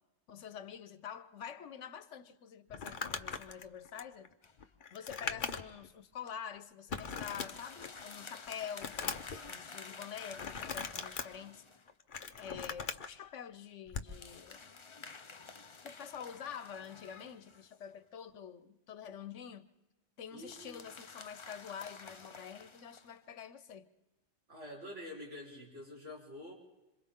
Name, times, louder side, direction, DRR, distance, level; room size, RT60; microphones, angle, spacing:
voice 1, 0.3-4.3 4.9-11.6 12.4-14.7 15.8-19.7 20.2-23.9, left 8 dB, 80° left, 1.2 m, -47 dB
Crumpling crinkling, 2.7-5.9 6.3-6.4 6.9-8.0 8.4-9.4 10.4-11.3 11.9-13.1 13.9-14.2, left 5 dB, 45° left, 1.0 m, -40 dB
sound 1, 4.4-4.7 6.9-11.9 14.1-17.9 20.4-23.2, left 4 dB, 30° left, 0.6 m, -51 dB
voice 2, 20.3-20.8 24.5-26.5, left 1 dB, 85° right, 4.8 m, -47 dB
26.5 x 26.5 x 3.7 m
omnidirectional pair, 1.2 m